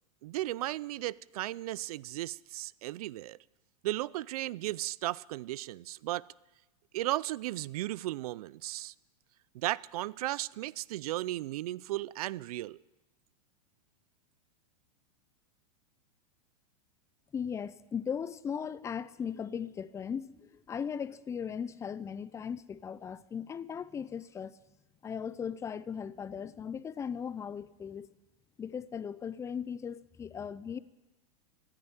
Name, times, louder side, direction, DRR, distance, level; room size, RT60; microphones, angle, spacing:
voice 1, 0.2-3.4 3.8-6.2 6.9-8.9 9.5-12.8, right 16 dB, 70° right, 0.5 m, -35 dB
voice 2, 17.3-24.6 25.0-28.1 28.6-30.8, left 7 dB, 15° left, 0.5 m, -38 dB
15.0 x 9.8 x 9.5 m
hypercardioid pair, 130°, 20 cm